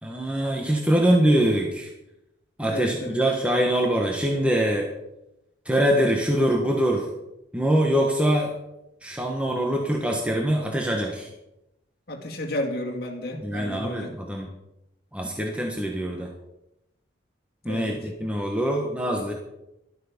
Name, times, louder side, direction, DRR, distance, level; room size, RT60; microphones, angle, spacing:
voice 1, 0.0-1.9 2.6-4.9 5.6-7.1 7.5-8.5 9.0-11.3 13.4-14.5 15.1-16.3 17.6-19.3, right 1 dB, 5° right, 0 dB, 1.3 m, -23 dB
voice 2, 2.7-3.2 12.1-14.1 17.7-18.0, left 1 dB, 55° left, 1 dB, 2.2 m, -32 dB
12.5 x 12.5 x 5.2 m, 0.91 s
head